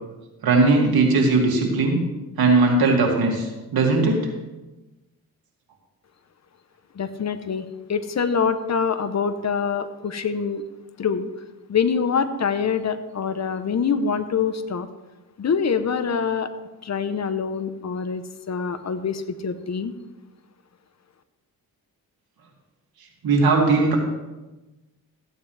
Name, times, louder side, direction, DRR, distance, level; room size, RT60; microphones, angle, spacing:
voice 1, 0.4-2.0 2.4-4.2 23.2-24.0, right 3 dB, 75° right, 0 dB, 2.6 m, -18 dB
voice 2, 6.9-10.6 11.0-11.3 11.7-14.9 15.4-16.5 16.8-19.9, left 6 dB, 45° left, 10 dB, 0.9 m, -25 dB
14.5 x 9.2 x 3.4 m, 1.1 s
cardioid pair, 80°, 37 cm